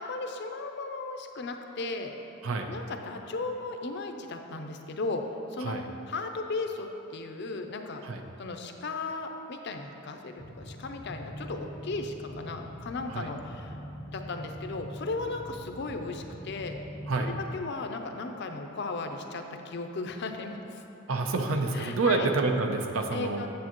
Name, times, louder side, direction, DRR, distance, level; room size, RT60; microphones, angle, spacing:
voice 1, 0.0-2.1 2.7-5.2 5.5-8.0 8.4-13.8 14.1-16.8 17.2-20.8 21.7-22.3 23.1-23.5, left 3 dB, 55° left, 5 dB, 0.5 m, -36 dB
sound 1, 10.4-17.6, equal, 15° right, 0.7 m, -43 dB
voice 2, 21.1-23.5, right 3 dB, 75° right, 5 dB, 0.6 m, -28 dB
8.5 x 7.5 x 3.0 m, 2.9 s
head